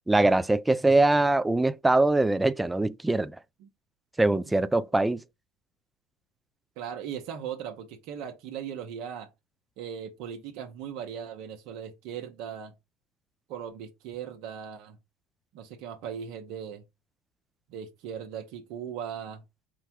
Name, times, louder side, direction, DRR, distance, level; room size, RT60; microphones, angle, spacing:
voice 1, 0.1-3.3 4.2-5.2, right 2 dB, 10° right, 0.3 m, -22 dB
voice 2, 6.8-9.3 9.8-12.7 13.5-15.0 15.5-16.8 17.7-19.4, right 8 dB, 70° right, 0.8 m, -38 dB
4.8 x 2.2 x 4.5 m
supercardioid pair, 95°, 0 cm